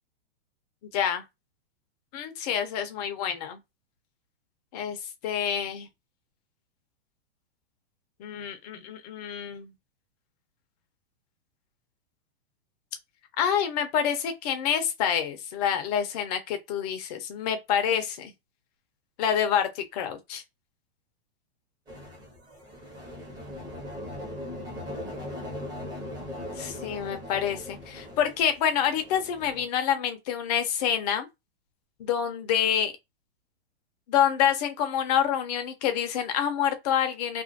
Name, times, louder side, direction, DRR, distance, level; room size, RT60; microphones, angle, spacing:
voice 1, 0.9-1.2 2.1-3.6 4.7-5.0 5.2-5.9 8.2-9.7 13.4-18.3 19.2-20.4 26.6-31.3 32.0-32.9 34.1-37.4, left 9 dB, 40° left, 0.6 m, -27 dB
sound 1, 21.9-29.7, left 1 dB, 15° right, 1.0 m, -39 dB
2.5 x 2.5 x 2.5 m
hypercardioid pair, 145°, 32 cm